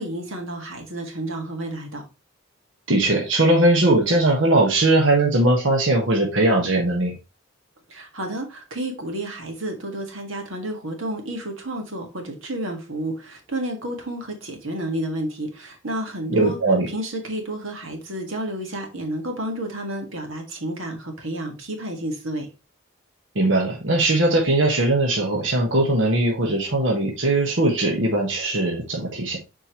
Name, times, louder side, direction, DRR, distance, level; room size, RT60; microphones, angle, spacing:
voice 1, 0.0-2.0 7.9-16.6 16.9-22.5, right 1 dB, 85° right, 1.8 m, -31 dB
voice 2, 2.9-7.1 16.3-16.9 23.3-29.4, right 2 dB, 65° right, 1.4 m, -20 dB
7.8 x 4.5 x 3.0 m
head